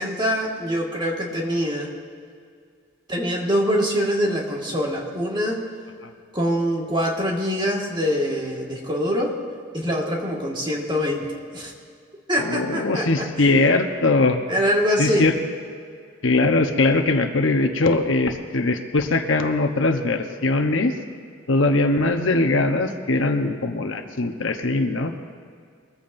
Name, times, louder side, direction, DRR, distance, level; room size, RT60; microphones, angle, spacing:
voice 1, 0.0-1.9 3.1-5.6 6.3-9.4 9.7-11.7 12.3-13.5 14.5-15.3, equal, 25° right, -1 dB, 1.8 m, -24 dB
voice 2, 12.4-14.4 15.0-15.3 16.2-20.9 21.5-25.1, left 2 dB, 75° left, 5 dB, 1.0 m, -21 dB
22.5 x 14.5 x 2.7 m, 2.2 s
head